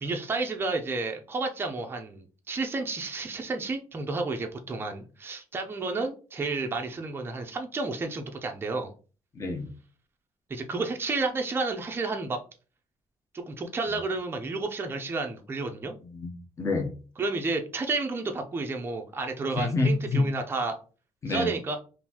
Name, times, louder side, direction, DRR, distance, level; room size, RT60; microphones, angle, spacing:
voice 1, 0.0-8.9 10.5-12.4 13.3-16.0 17.2-20.8 21.3-21.8, right 3 dB, 20° right, 0.4 m, -31 dB
voice 2, 9.3-9.7 16.0-16.3 16.6-16.9 19.6-20.3 21.2-21.5, left 3 dB, 25° left, 0.6 m, -27 dB
3.7 x 2.5 x 2.8 m
cardioid pair, 180°, 12 cm